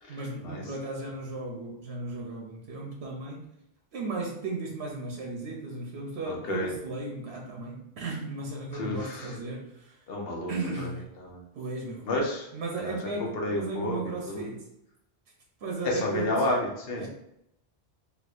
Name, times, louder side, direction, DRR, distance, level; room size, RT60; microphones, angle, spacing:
voice 1, 0.1-3.5 3.9-10.0 10.5-11.0 11.5-12.1 12.5-14.7 15.6-16.5 17.0-17.1, right 3 dB, 85° right, 0 dB, 0.9 m, -35 dB
voice 2, 6.3-6.7 8.7-9.3 10.1-10.5 11.3-11.4 12.0-12.5 12.8-13.0 13.3-14.0 14.3-14.5 15.8-17.1, left 1 dB, 65° left, -1 dB, 1.1 m, -30 dB
4.2 x 2.8 x 2.4 m, 0.79 s
omnidirectional pair, 1.0 m